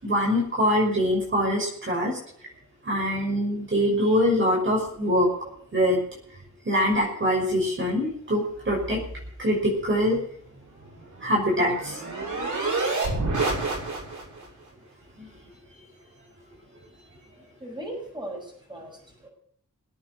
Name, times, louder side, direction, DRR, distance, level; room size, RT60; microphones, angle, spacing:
voice 1, 0.0-2.2 2.8-5.3 5.7-6.0 6.6-9.0 9.4-10.2 11.2-12.0 15.2-15.3, equal, 40° right, -2 dB, 5.9 m, -23 dB
sound 1, 10.8-14.4, right 3 dB, 70° right, 7.2 m, -28 dB
voice 2, 17.6-19.3, right 1 dB, 15° right, 0 dB, 6.9 m, -38 dB
21.0 x 9.0 x 6.2 m, 0.62 s
wide cardioid pair, 165°, 30 cm